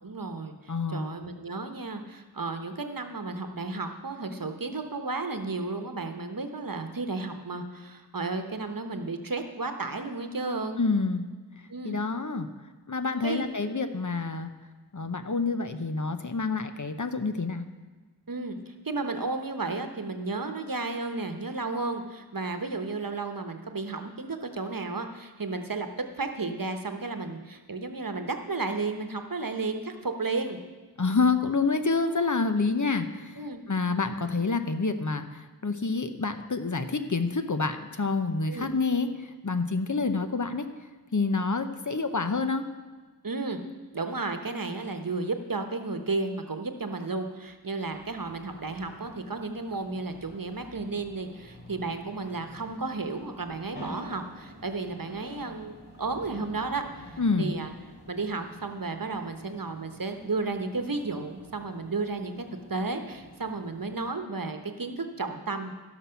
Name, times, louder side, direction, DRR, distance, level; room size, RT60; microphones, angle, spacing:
voice 1, 0.0-10.8 11.7-12.0 13.2-13.5 18.3-25.9 26.2-30.6 32.1-32.3 33.4-33.6 38.5-38.7 43.2-43.6 43.9-57.7 58.1-62.4 62.7-65.7, right 3 dB, 55° right, 6 dB, 1.1 m, -33 dB
voice 2, 0.7-1.1 10.8-11.2 11.8-12.5 12.9-14.5 14.9-17.6 31.0-33.4 33.7-40.7 41.1-42.6 57.2-57.5, left 4 dB, 50° left, 8 dB, 0.8 m, -28 dB
sound 1, 47.8-64.1, equal, 75° left, 4.2 m, -49 dB
15.5 x 6.1 x 5.7 m, 1.3 s
wide cardioid pair, 40°, 40 cm